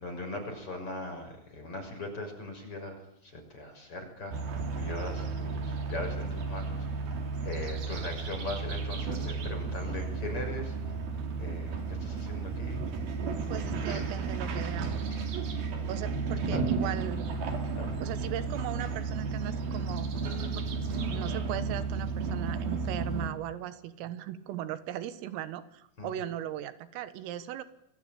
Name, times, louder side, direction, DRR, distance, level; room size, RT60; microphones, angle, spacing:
voice 1, 0.0-3.0 3.2-4.3 4.7-6.8 7.4-10.7 11.4-12.8 13.9-14.0 15.1-15.2 16.5-16.6 17.8-18.0 26.0-26.1, left 2 dB, 25° left, 5 dB, 6.9 m, -39 dB
sound 1, 4.3-23.3, right 4 dB, 50° right, 4.5 m, -33 dB
voice 2, 13.5-14.9 15.9-17.3 18.0-20.1 20.6-20.7 21.1-27.6, right 11 dB, 85° right, 12 dB, 4.0 m, -38 dB
29.5 x 22.5 x 8.8 m, 0.74 s
omnidirectional pair, 5.8 m